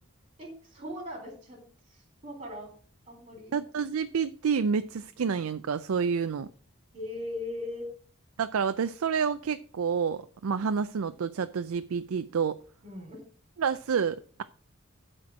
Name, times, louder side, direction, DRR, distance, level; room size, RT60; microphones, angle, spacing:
voice 1, 0.4-1.6 1.9-2.7 3.1-3.5 6.9-7.9 12.8-13.3, left 1 dB, 25° right, 1 dB, 3.6 m, -39 dB
voice 2, 3.5-6.5 8.4-12.6 13.6-14.4, right 6 dB, 85° right, 11 dB, 0.4 m, -29 dB
12.0 x 4.5 x 6.1 m, 0.43 s
head